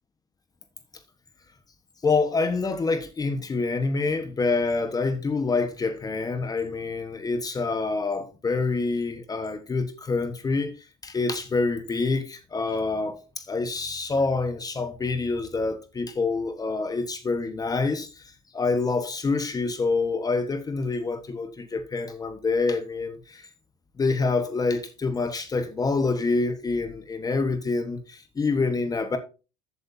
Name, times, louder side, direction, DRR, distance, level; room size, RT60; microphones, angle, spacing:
voice 1, 2.0-10.8 11.0-23.5 24.0-29.2, left 3 dB, 20° left, 1.3 m, -26 dB
14.0 x 8.2 x 2.7 m
supercardioid pair, 110°, 19 cm